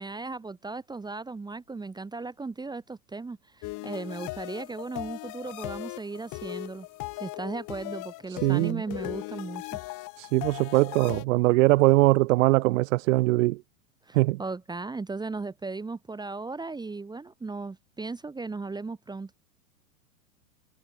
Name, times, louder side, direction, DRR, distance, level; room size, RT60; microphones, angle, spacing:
voice 1, 0.0-6.9 7.1-9.8 14.0-19.3, right 3 dB, 10° right, 1.6 m, -36 dB
sound 1, 3.6-11.2, left 21 dB, 45° left, 4.3 m, -38 dB
voice 2, 8.4-8.8 10.2-13.6 14.1-14.4, right 20 dB, 60° right, 0.7 m, -22 dB
hypercardioid pair, 110°, 45 cm